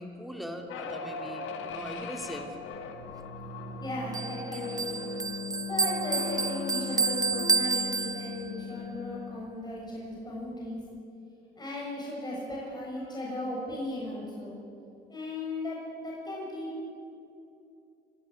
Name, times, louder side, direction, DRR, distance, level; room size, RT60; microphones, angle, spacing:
voice 1, 0.0-2.6 4.5-4.6, equal, ahead, 3 dB, 2.7 m, -40 dB
sound 1, 0.7-9.4, left 5 dB, 85° left, 1.8 m, -38 dB
voice 2, 3.8-5.1 5.7-10.8 11.6-14.6 15.1-16.7, left 1 dB, 20° left, -5 dB, 7.1 m, -36 dB
Bell, 4.1-8.6, right 4 dB, 20° right, 0.5 m, -30 dB
25.0 x 12.5 x 9.9 m, 2.7 s
cardioid pair, 90°, 20 cm